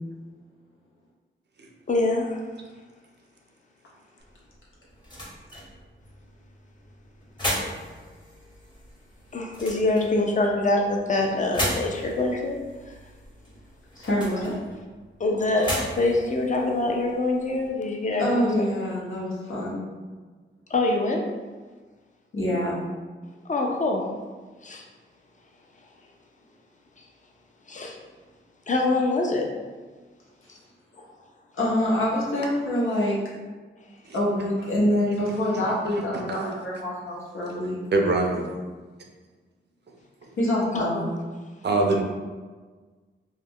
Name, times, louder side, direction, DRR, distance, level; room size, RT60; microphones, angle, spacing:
voice 1, 1.9-2.4 9.3-12.6 15.2-18.5 20.7-21.2 23.5-24.1 24.6-24.8 27.7-28.0 28.7-29.5 30.5-30.6 40.7-40.9, left 2 dB, 40° left, 1 dB, 0.5 m, -24 dB
sound 1, 4.2-17.7, equal, 20° left, 0.9 m, -37 dB
voice 2, 14.0-14.6 18.2-19.8 22.3-22.8 31.6-33.2 34.1-37.8 38.1-38.4 40.4-41.0, left 1 dB, 90° left, -6 dB, 0.8 m, -26 dB
voice 3, 35.7-36.0 36.3-36.5 37.9-38.5 41.6-42.0, right 2 dB, 55° right, 2 dB, 0.5 m, -24 dB
2.4 x 2.1 x 3.5 m, 1.4 s
wide cardioid pair, 70°, 21 cm